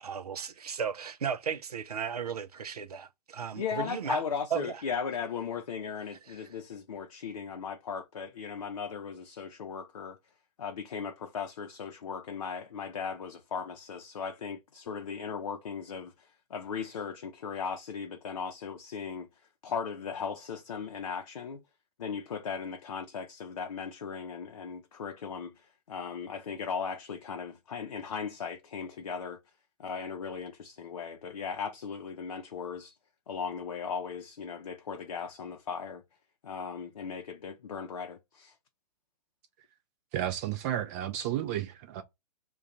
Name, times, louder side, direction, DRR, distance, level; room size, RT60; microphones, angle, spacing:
voice 1, 0.0-4.2 4.5-4.8 6.3-6.4, right 7 dB, 70° right, 0.6 m, -35 dB
voice 2, 3.5-10.2 10.6-19.3 19.6-21.6 22.0-29.4 29.8-32.9 33.3-36.0 36.4-38.5, left 6 dB, 55° left, 0.6 m, -37 dB
voice 3, 40.1-42.0, right 11 dB, 25° right, 0.4 m, -32 dB
2.4 x 2.3 x 4.0 m
figure-of-eight pair, 115°, 21 cm